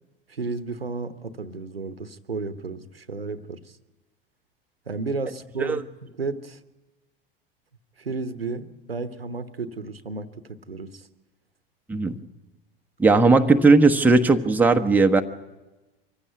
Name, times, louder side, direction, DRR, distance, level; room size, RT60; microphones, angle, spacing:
voice 1, 0.3-3.8 4.9-6.6 8.0-11.1 13.1-13.2, right 3 dB, 85° right, 13 dB, 1.0 m, -33 dB
voice 2, 13.0-15.2, right 3 dB, 5° right, 4 dB, 1.0 m, -17 dB
24.0 x 15.5 x 9.2 m, 1.1 s
figure-of-eight pair, 80°, 29 cm